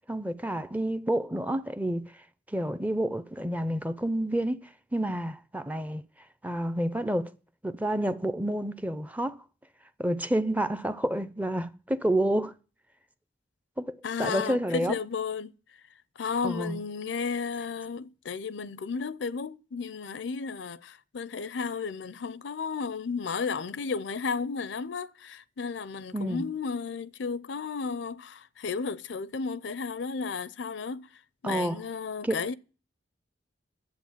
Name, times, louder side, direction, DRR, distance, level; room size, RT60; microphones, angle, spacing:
voice 1, 0.1-2.1 2.5-6.0 6.4-7.3 7.6-9.4 10.0-12.5 13.8-15.0 16.4-16.8 26.1-26.4 31.4-31.8 32.2-32.4, right 1 dB, 10° right, 0.5 m, -29 dB
voice 2, 14.0-15.5 16.2-31.1 31.4-32.5, left 5 dB, 70° left, 0.5 m, -33 dB
11.5 x 8.0 x 7.2 m
head